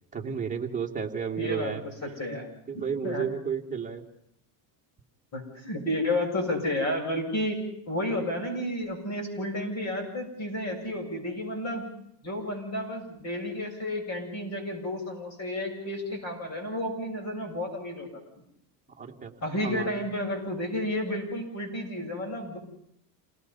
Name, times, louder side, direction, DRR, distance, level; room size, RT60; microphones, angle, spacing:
voice 1, 0.1-1.8 2.3-2.4 2.7-4.1 19.0-19.3 19.6-20.1, right 6 dB, 15° right, 1 dB, 2.4 m, -32 dB
voice 2, 1.4-1.7 2.0-2.5 2.7-3.2 5.3-7.6 7.9-11.8 12.2-18.2 19.4-22.6, left 1 dB, 30° left, 1 dB, 7.7 m, -31 dB
29.0 x 19.0 x 5.7 m, 0.70 s
cardioid pair, 135°, 49 cm